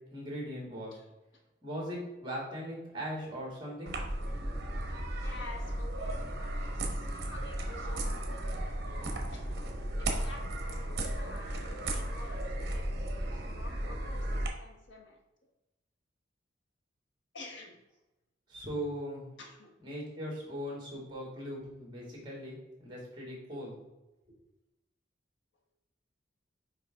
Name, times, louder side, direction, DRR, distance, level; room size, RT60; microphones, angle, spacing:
voice 1, 0.1-1.0 1.6-3.9 18.5-19.3 19.8-23.8, equal, 25° right, -3 dB, 2.2 m, -39 dB
sound 1, 3.9-14.5, right 1 dB, 55° right, 1.0 m, -35 dB
voice 2, 5.2-8.5 9.3-9.6 10.0-15.2 17.3-17.8 19.4-19.7, left 2 dB, 75° left, 1 dB, 1.2 m, -50 dB
5.8 x 4.9 x 3.6 m, 0.99 s
head